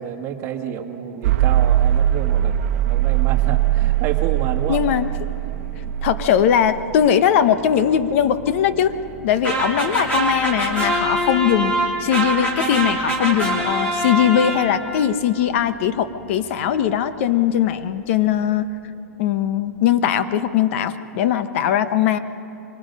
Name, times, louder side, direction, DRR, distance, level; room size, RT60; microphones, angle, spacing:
voice 1, 0.0-4.9 9.5-9.8, right 9 dB, 35° right, 3 dB, 1.7 m, -30 dB
sound 1, 1.2-17.2, right 12 dB, 60° right, 1.0 m, -24 dB
voice 2, 4.7-5.1 6.0-8.9 9.2-11.7 12.0-18.7 19.2-22.2, left 9 dB, 55° left, 12 dB, 1.0 m, -20 dB
sound 2, 9.4-15.0, right 1 dB, 15° left, 3.1 m, -24 dB
24.5 x 19.5 x 5.4 m, 2.7 s
hypercardioid pair, 140°, 8 cm